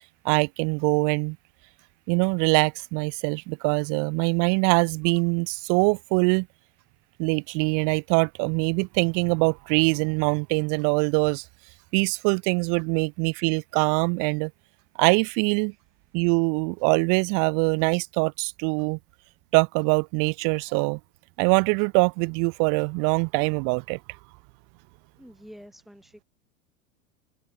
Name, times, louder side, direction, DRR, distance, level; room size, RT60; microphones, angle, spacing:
voice 1, 0.2-1.4 2.1-6.5 7.2-11.4 11.9-14.5 15.0-15.7 16.1-19.0 19.5-21.0 21.4-24.0, right 37 dB, 45° right, 1.0 m, -23 dB
voice 2, 25.2-26.2, equal, ahead, 1.7 m, -47 dB
hypercardioid pair, 115°, 43 cm